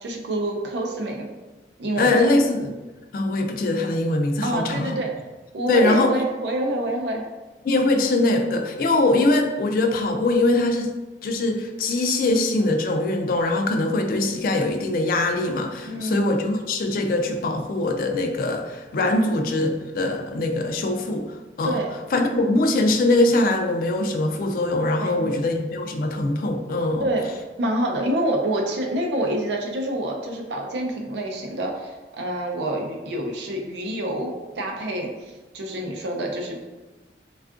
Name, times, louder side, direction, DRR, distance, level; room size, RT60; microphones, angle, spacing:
voice 1, 0.0-1.3 1.8-2.2 4.4-5.1 5.5-7.3 15.9-16.3 21.6-21.9 25.0-25.4 27.0-27.3 27.6-36.6, right 1 dB, 75° right, 1 dB, 0.5 m, -27 dB
voice 2, 2.0-2.7 3.1-5.0 5.7-6.1 7.6-10.9 11.2-21.3 21.6-21.8 22.1-27.1, left 2 dB, 50° left, 4 dB, 0.3 m, -22 dB
3.4 x 2.4 x 2.4 m, 1.2 s
head